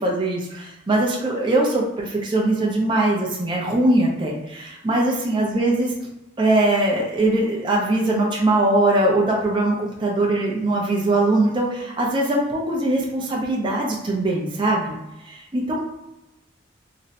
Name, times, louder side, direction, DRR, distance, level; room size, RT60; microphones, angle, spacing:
voice 1, 0.0-5.9 6.4-15.0 15.2-15.8, right 2 dB, 25° right, -2 dB, 0.4 m, -21 dB
2.5 x 2.1 x 3.9 m, 0.95 s
head